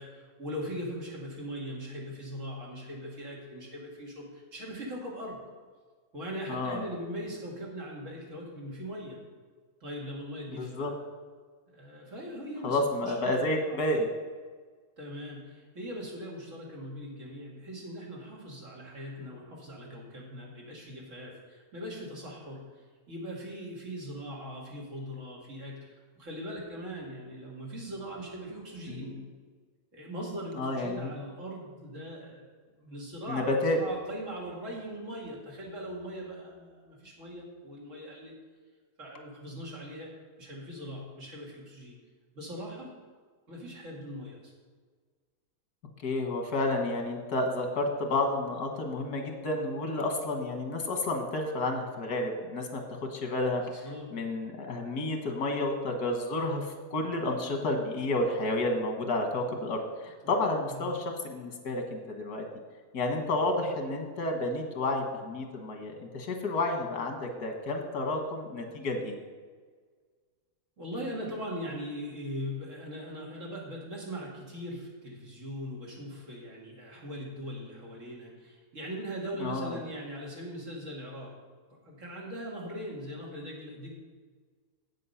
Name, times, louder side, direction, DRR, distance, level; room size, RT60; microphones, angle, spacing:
voice 1, 0.0-5.4 6.1-9.2 9.8-10.9 11.7-13.3 13.7-13.8 15.0-29.1 29.9-32.5 32.8-38.3 39.0-40.1 40.4-42.0 42.3-42.9 43.5-44.5 53.8-54.1 60.2-60.4 60.7-60.9 70.8-81.3 81.8-83.9, equal, 55° right, -3 dB, 2.5 m, -40 dB
voice 2, 6.5-6.8 10.5-10.9 12.6-14.1 28.9-29.2 30.5-31.1 33.3-33.8 46.0-53.8 54.1-62.4 62.9-69.2 79.4-79.8, left 2 dB, 90° left, 4 dB, 1.8 m, -31 dB
8.3 x 7.7 x 5.6 m, 1.5 s
omnidirectional pair, 1.6 m